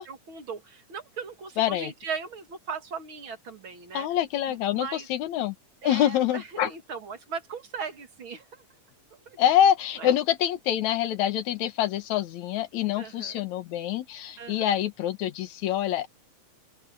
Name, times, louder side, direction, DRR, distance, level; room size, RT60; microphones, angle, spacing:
voice 1, 0.0-4.1 4.7-5.1 5.8-8.6 9.3-9.4 10.0-10.1 13.0-13.4 14.4-14.8, right 5 dB, 45° right, 2.6 m, -38 dB
voice 2, 1.6-1.9 3.9-5.6 5.8-6.7 9.4-16.1, left 11 dB, 70° left, 2.5 m, -26 dB
open air
omnidirectional pair, 3.5 m